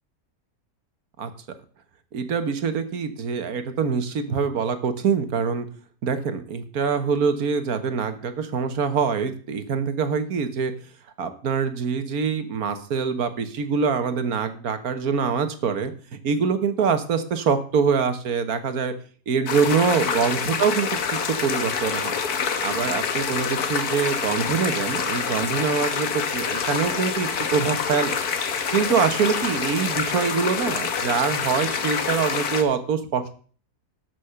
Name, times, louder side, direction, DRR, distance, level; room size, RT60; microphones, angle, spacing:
voice 1, 2.1-5.7 6.0-10.7 11.2-18.9 19.3-22.1 22.6-28.2 28.7-33.3, right 6 dB, 70° right, 9 dB, 1.6 m, -24 dB
sound 1, 19.5-32.6, left 6 dB, 75° left, 1.7 m, -26 dB
13.0 x 6.3 x 5.7 m, 0.43 s
omnidirectional pair, 1.6 m